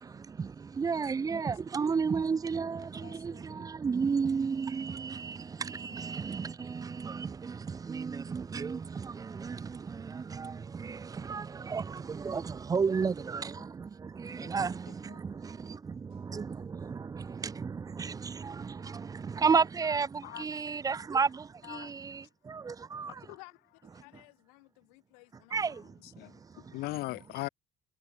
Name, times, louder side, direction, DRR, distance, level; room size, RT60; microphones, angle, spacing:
voice 1, 0.0-23.1 25.5-26.8, right 5 dB, 20° right, 0.4 m, -33 dB
voice 2, 3.0-3.6 14.3-14.5 15.1-15.2 20.2-20.4 21.6-21.9 26.2-27.5, left 20 dB, 55° left, 0.4 m, -40 dB
voice 3, 23.1-23.6 23.9-25.9, left 31 dB, 70° left, 0.9 m, -53 dB
hypercardioid pair, 65°, 19 cm